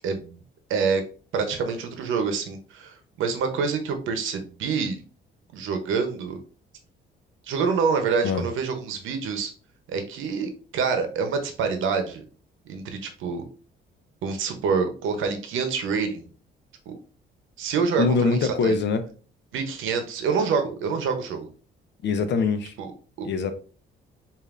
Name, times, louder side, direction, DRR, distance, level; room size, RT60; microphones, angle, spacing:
voice 1, 0.0-0.4 0.7-1.0 1.3-5.0 5.5-6.4 7.5-9.5 9.9-12.2 12.7-13.4 14.2-16.3 16.9-17.0 17.6-18.7 19.5-21.5 22.8-22.9 23.2-23.3, right 5 dB, 80° right, 0.8 m, -26 dB
voice 2, 18.0-19.0 22.0-22.7 23.2-23.5, left 4 dB, 65° left, 0.7 m, -23 dB
5.1 x 2.6 x 2.5 m
cardioid pair, 90°, 20 cm